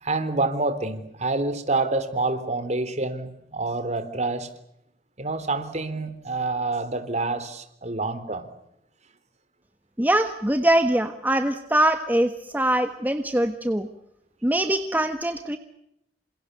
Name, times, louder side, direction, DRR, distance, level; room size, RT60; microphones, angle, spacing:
voice 1, 0.0-4.5 5.2-8.5, right 3 dB, 40° right, 11 dB, 3.5 m, -27 dB
voice 2, 10.0-13.9 14.4-15.6, right 1 dB, 10° right, 7 dB, 1.4 m, -23 dB
29.0 x 27.0 x 6.7 m, 0.79 s
head